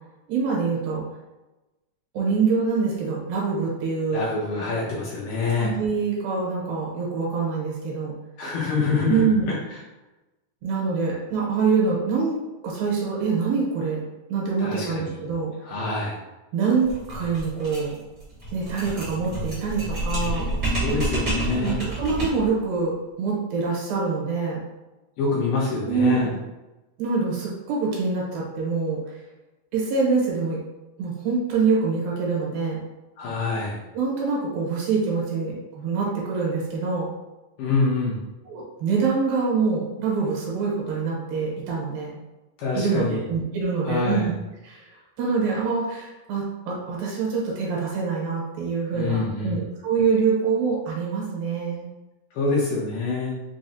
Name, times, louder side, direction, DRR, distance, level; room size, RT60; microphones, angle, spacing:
voice 1, 0.3-1.0 2.1-4.2 5.6-8.1 9.1-9.5 10.6-14.0 14.3-15.5 16.5-17.9 18.5-20.5 21.6-24.6 25.9-26.2 27.0-29.0 29.7-30.6 31.0-32.8 33.9-37.1 38.5-42.1 42.7-44.3 44.6-44.9 45.2-51.9, right 5 dB, 80° right, -4 dB, 2.5 m, -25 dB
voice 2, 4.1-5.7 8.4-9.5 14.6-15.2 15.6-16.2 20.8-21.8 25.2-26.3 33.2-33.8 37.6-38.2 42.6-43.2 43.8-44.3 48.9-49.6 52.4-53.3, left 4 dB, 75° left, -5 dB, 2.1 m, -26 dB
sound 1, 16.8-22.5, right 1 dB, 65° right, 0.9 m, -29 dB
6.0 x 2.0 x 2.7 m, 1.1 s
omnidirectional pair, 4.3 m